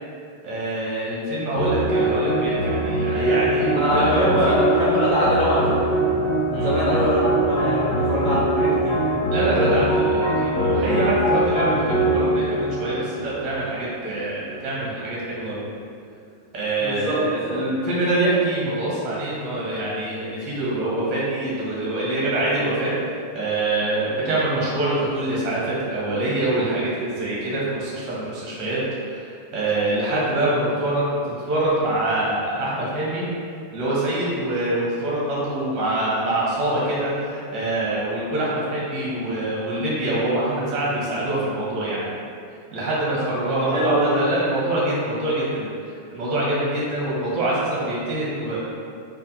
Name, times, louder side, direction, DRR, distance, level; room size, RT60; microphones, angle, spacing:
voice 1, 0.4-4.5 6.5-6.7 9.3-15.6 16.5-22.9 23.3-28.8 29.0-29.2 29.5-31.1 31.5-33.2 33.7-42.1 42.7-45.7 46.1-48.6, right 2 dB, 30° right, -6 dB, 0.8 m, -25 dB
sound 1, 1.6-14.0, right 1 dB, 55° left, 0.7 m, -22 dB
voice 2, 3.7-9.2 16.8-17.2 17.5-17.6 43.4-44.2, equal, 10° left, -14 dB, 1.3 m, -23 dB
3.3 x 2.1 x 2.8 m, 2.4 s
figure-of-eight pair, 90°, 0 cm